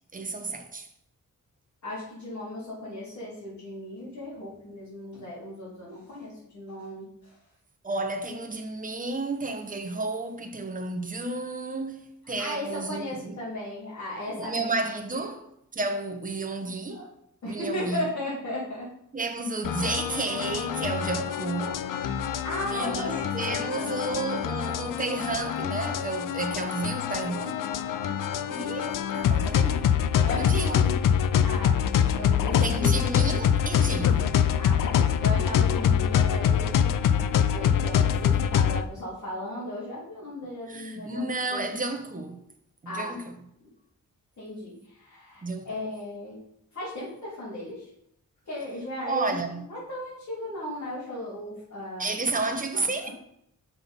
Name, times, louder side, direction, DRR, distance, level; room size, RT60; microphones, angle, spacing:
voice 1, 0.1-0.9 7.8-13.4 14.4-15.5 15.7-17.1 17.4-18.1 19.1-21.9 22.7-27.6 28.5-29.9 30.4-30.8 32.6-34.3 40.7-42.4 42.8-43.3 45.4-45.7 49.0-49.7 52.0-53.1, right 3 dB, 25° right, 1.0 m, -32 dB
voice 2, 1.8-7.3 12.4-14.7 16.9-17.1 17.4-18.9 20.6-20.7 22.4-24.2 30.2-31.0 31.4-31.8 32.2-33.0 34.0-41.6 42.9-43.2 43.6-43.7 44.4-46.4 46.7-47.9 48.5-49.4 49.7-52.1 52.4-53.1, left 1 dB, 65° left, 3.5 m, -36 dB
sound 1, 19.6-38.8, left 8 dB, 85° left, 0.5 m, -25 dB
6.0 x 5.9 x 5.4 m
wide cardioid pair, 145°, 31 cm